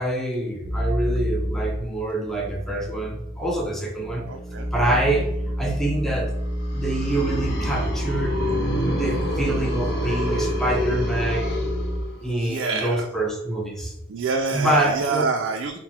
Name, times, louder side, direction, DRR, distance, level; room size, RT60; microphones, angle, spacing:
voice 1, 0.0-4.3 4.7-5.3 5.6-6.3 6.7-8.4 8.9-11.6 12.2-13.9 14.5-15.3, right 1 dB, ahead, 0 dB, 0.5 m, -26 dB
sound 1, 0.6-1.8 2.2-12.0, equal, 20° right, 0.9 m, -28 dB
voice 2, 4.3-4.7 12.2-13.1 14.1-15.8, right 4 dB, 65° right, 3 dB, 0.3 m, -27 dB
sound 2, 6.5-12.4, left 1 dB, 50° left, 1.0 m, -28 dB
3.9 x 2.1 x 4.2 m, 0.84 s
head